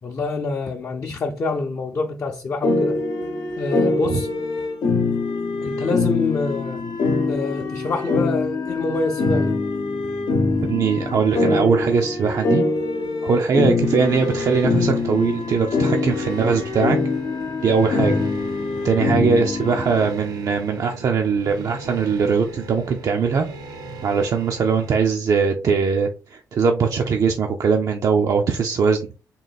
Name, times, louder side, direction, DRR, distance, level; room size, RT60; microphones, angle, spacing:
voice 1, 0.0-3.0 3.6-4.3 5.6-6.8 7.3-9.6, left 3 dB, 45° left, 0.6 m, -26 dB
sound 1, 2.6-20.1, left 3 dB, 75° left, 0.9 m, -23 dB
voice 2, 10.6-12.6 13.2-17.0 17.6-18.2 18.8-23.5 24.0-29.0, right 5 dB, 55° right, 0.5 m, -21 dB
sound 2, 13.7-25.1, right 3 dB, 90° right, 0.9 m, -39 dB
3.8 x 2.4 x 4.0 m
cardioid pair, 85°, 7 cm